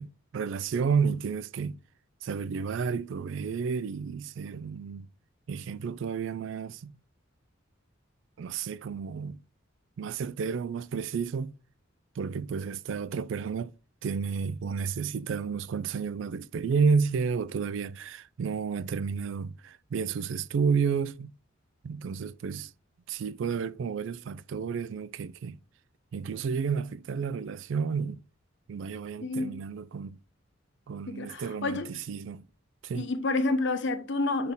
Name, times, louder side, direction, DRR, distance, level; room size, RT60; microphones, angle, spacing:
voice 1, 0.0-1.8 2.2-5.1 5.5-6.9 8.4-9.4 10.0-11.5 12.2-13.7 14.0-21.3 21.8-22.7 23.1-25.6 26.1-28.2 28.7-30.2 30.9-32.4 32.8-33.1, right 5 dB, 65° right, 0.3 m, -31 dB
voice 2, 29.2-29.5 31.1-31.9 32.9-34.5, left 2 dB, 60° left, 0.9 m, -29 dB
6.8 x 4.2 x 3.7 m
head